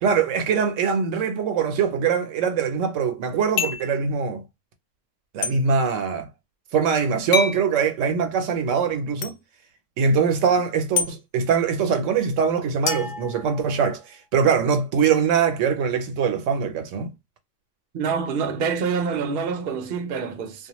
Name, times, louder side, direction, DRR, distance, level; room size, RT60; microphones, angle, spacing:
voice 1, 0.0-4.4 5.3-6.3 6.7-9.3 10.0-17.1, right 6 dB, 80° right, 1.0 m, -22 dB
sound 1, 3.6-3.9 5.4-5.6 7.3-7.6 9.2-9.3 11.0-11.1 12.9-13.9, left 6 dB, 85° left, 1.0 m, -26 dB
voice 2, 17.9-20.7, right 5 dB, 55° right, 0.7 m, -26 dB
2.4 x 2.1 x 2.9 m
omnidirectional pair, 1.3 m